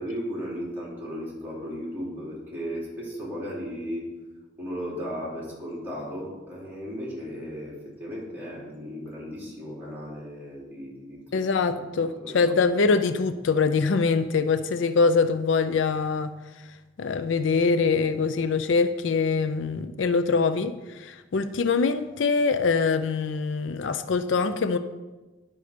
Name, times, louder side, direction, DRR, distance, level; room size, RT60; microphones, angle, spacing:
voice 1, 0.0-4.2 4.6-11.7 12.0-12.5, equal, 10° right, -6 dB, 3.4 m, -36 dB
voice 2, 11.3-16.3 17.0-24.8, left 4 dB, 75° left, 10 dB, 0.5 m, -24 dB
10.5 x 5.5 x 5.1 m, 1.2 s
head